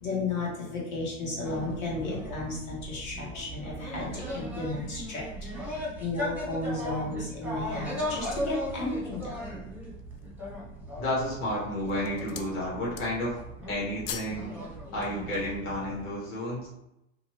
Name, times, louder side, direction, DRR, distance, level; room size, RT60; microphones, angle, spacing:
voice 1, 0.0-5.2 6.0-9.4, left 2 dB, 85° left, -4 dB, 1.3 m, -33 dB
sound 1, 1.4-16.1, equal, 5° right, 0.7 m, -38 dB
sound 2, 7.9-8.7 9.3-9.4 9.8-10.4 11.1-11.5 11.8-12.6 12.8-13.4 13.6-14.4 14.7-14.9, left 8 dB, 50° left, 0.5 m, -42 dB
voice 2, 11.0-13.4 13.7-14.5 14.9-16.7, left 1 dB, 35° left, -7 dB, 1.1 m, -31 dB
2.6 x 2.4 x 2.9 m, 0.85 s
hypercardioid pair, 105°, 39 cm